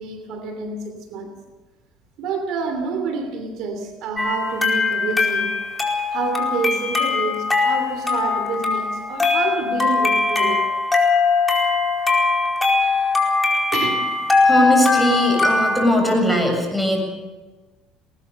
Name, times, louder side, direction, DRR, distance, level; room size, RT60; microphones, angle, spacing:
voice 1, 0.0-1.3 2.2-5.5 6.1-10.6 12.8-12.9 13.7-14.1, right 4 dB, 65° right, 8 dB, 2.8 m, -28 dB
sound 1, 4.2-15.9, left 4 dB, 15° left, 4.6 m, -20 dB
voice 2, 14.4-17.0, equal, 5° right, 4 dB, 7.4 m, -19 dB
19.5 x 19.5 x 6.8 m, 1.2 s
supercardioid pair, 95°, 0 cm